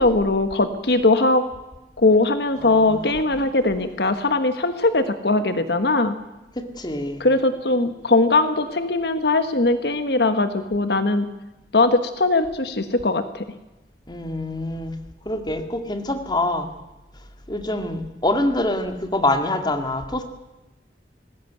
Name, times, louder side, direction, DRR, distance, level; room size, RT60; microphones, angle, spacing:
voice 1, 0.0-1.4 2.0-6.1 7.2-11.3 11.7-13.4, left 2 dB, 65° left, 9 dB, 1.3 m, -20 dB
voice 2, 2.5-3.7 6.5-7.2 14.1-15.0 15.3-16.7 17.5-20.2, left 1 dB, 25° left, 6 dB, 2.2 m, -26 dB
19.5 x 16.5 x 9.5 m, 1.0 s
head